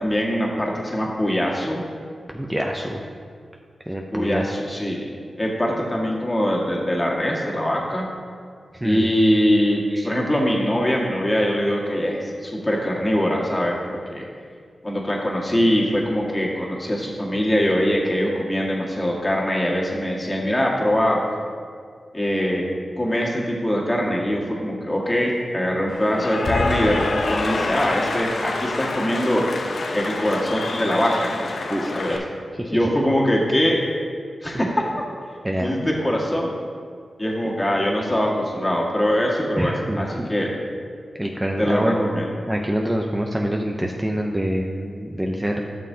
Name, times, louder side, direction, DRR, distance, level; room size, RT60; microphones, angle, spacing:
voice 1, 0.0-1.8 4.1-5.0 5.4-8.1 8.8-13.8 14.1-14.3 14.8-21.2 22.1-22.7 23.0-29.4 29.9-31.3 31.9-32.2 32.7-33.8 34.4-34.8 35.6-36.5 37.2-40.5 41.6-42.3, equal, 20° left, -3 dB, 1.8 m, -22 dB
voice 2, 2.3-3.0 3.9-4.5 8.7-9.1 9.9-10.1 31.7-32.2 32.6-32.9 34.5-34.6 35.4-35.8 39.6-40.3 41.2-42.1 42.5-45.6, equal, 15° right, 1 dB, 0.7 m, -25 dB
Cheering / Applause, 25.9-32.2, left 3 dB, 70° left, 0.7 m, -27 dB
11.0 x 6.4 x 2.8 m, 2.1 s
cardioid pair, 45°, 0 cm